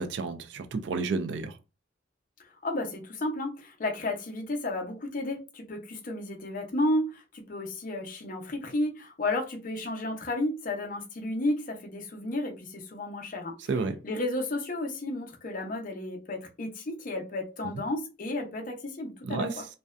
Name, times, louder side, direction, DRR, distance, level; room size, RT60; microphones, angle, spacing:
voice 1, 0.0-1.6 13.7-14.0 19.3-19.6, right 4 dB, 65° right, 0.4 m, -31 dB
voice 2, 2.6-13.6 14.0-19.7, left 1 dB, 45° left, 0.6 m, -32 dB
2.6 x 2.2 x 2.3 m
head